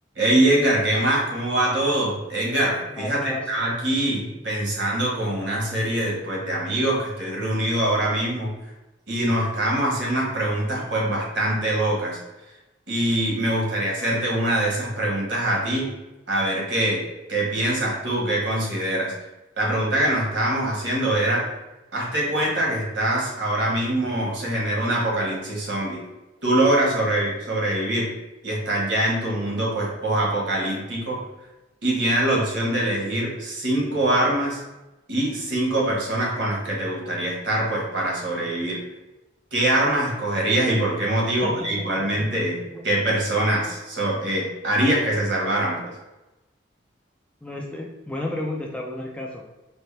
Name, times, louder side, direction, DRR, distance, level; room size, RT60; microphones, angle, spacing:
voice 1, 0.1-8.5 9.1-12.2 12.9-15.9 16.3-19.1 19.6-21.5 21.9-26.0 26.4-28.1 28.4-31.2 31.8-34.6 35.1-38.8 39.5-45.9, right 1 dB, 65° right, -2 dB, 1.1 m, -23 dB
voice 2, 2.9-3.5 41.4-41.7 42.7-42.8 47.4-49.4, left 1 dB, 5° left, -1 dB, 0.3 m, -32 dB
4.3 x 2.0 x 3.2 m, 1.0 s
head